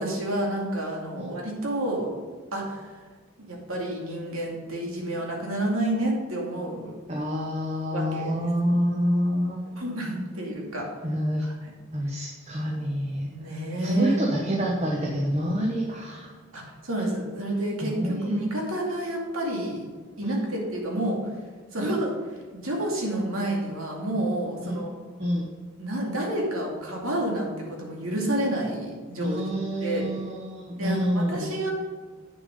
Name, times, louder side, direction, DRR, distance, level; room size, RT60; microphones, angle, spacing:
voice 1, 0.0-2.1 2.5-3.1 3.5-6.9 7.9-8.3 9.7-10.9 11.4-11.7 13.3-14.2 16.5-19.8 20.2-21.2 21.7-24.9 25.8-29.4 29.8-30.1 30.8-31.7, right 1 dB, 90° right, -1 dB, 2.5 m, -29 dB
voice 2, 7.1-9.6 11.0-11.4 11.9-13.3 13.8-16.3 17.8-18.4 20.2-20.3 24.6-24.8 25.2-25.4 29.2-31.5, equal, 35° right, -1 dB, 1.1 m, -27 dB
8.5 x 6.9 x 5.4 m, 1.5 s
head